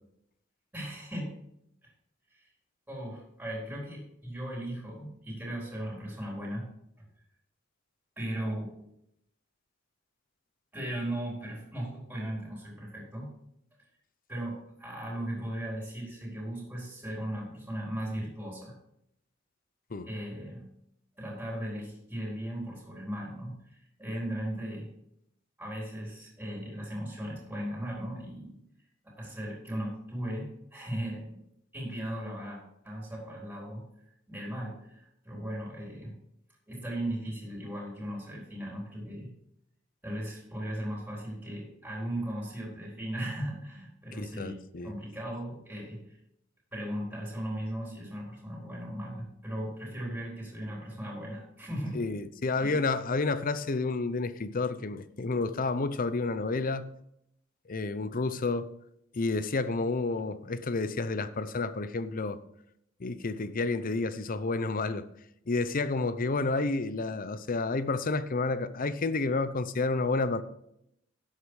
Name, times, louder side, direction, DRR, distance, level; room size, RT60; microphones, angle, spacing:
voice 1, 0.7-1.3 1.8-1.9 2.3-2.5 2.9-6.7 7.0-7.1 8.2-8.7 10.7-13.3 14.3-18.7 20.0-20.6 21.2-24.9 25.6-28.6 29.2-31.2 31.7-32.6 32.8-33.8 34.3-36.1 36.7-39.3 40.0-44.6 44.8-46.1 46.7-52.0 52.6-52.8, right 1 dB, 10° right, 4.2 m, -37 dB
voice 2, 44.2-44.9 51.9-56.9 57.7-58.7 59.1-62.4 63.0-65.1 65.5-70.4, left 3 dB, 45° left, 0.7 m, -30 dB
11.5 x 8.2 x 4.9 m
head